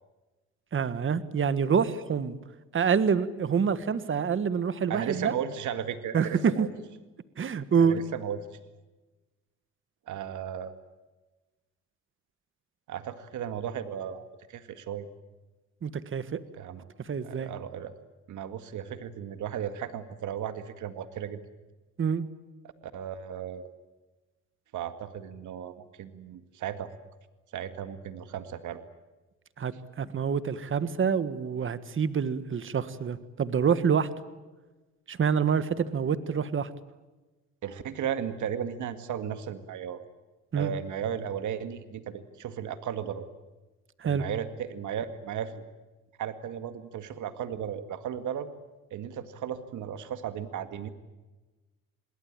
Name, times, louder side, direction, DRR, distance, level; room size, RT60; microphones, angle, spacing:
voice 1, 0.7-2.4 2.7-5.3 6.1-6.7 7.4-8.0 15.8-16.4 17.0-17.5 22.0-22.3 29.6-34.1 35.1-36.7 40.5-40.7 44.0-44.2, right 6 dB, 40° right, 14 dB, 1.5 m, -27 dB
voice 2, 4.9-6.7 7.8-8.6 10.1-10.7 12.9-15.1 16.6-16.8 17.2-17.9 18.3-21.4 22.8-23.7 24.7-26.9 27.5-28.8 37.6-40.0 40.6-43.3 44.0-45.6 46.2-48.5 48.9-50.9, right 9 dB, 75° right, 10 dB, 2.0 m, -35 dB
27.5 x 21.0 x 8.9 m, 1.2 s
cardioid pair, 90°, 30 cm